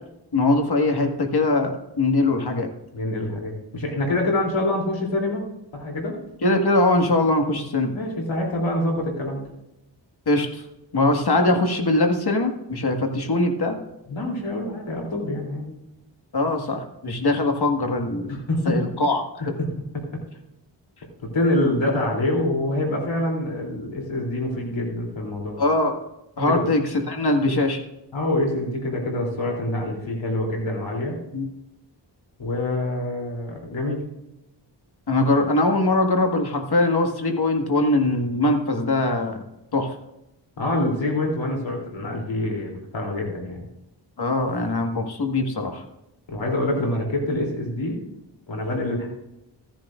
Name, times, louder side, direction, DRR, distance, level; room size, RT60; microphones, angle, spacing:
voice 1, 0.3-2.7 6.4-7.9 10.3-10.6 10.9-13.8 16.3-18.4 18.7-19.5 25.6-25.9 26.4-26.8 27.1-27.8 31.3-31.5 35.1-39.4 39.7-40.0 44.2-45.8, left 2 dB, 55° left, 4 dB, 1.9 m, -22 dB
voice 2, 2.9-5.4 5.7-6.2 7.9-9.4 14.1-15.8 18.3-18.9 19.6-19.7 21.3-25.6 26.5-26.7 28.1-31.2 32.4-34.0 40.6-43.6 46.3-48.0 48.5-49.1, left 1 dB, 85° left, -1 dB, 3.3 m, -26 dB
14.5 x 10.5 x 2.5 m, 0.89 s
wide cardioid pair, 65°, 45 cm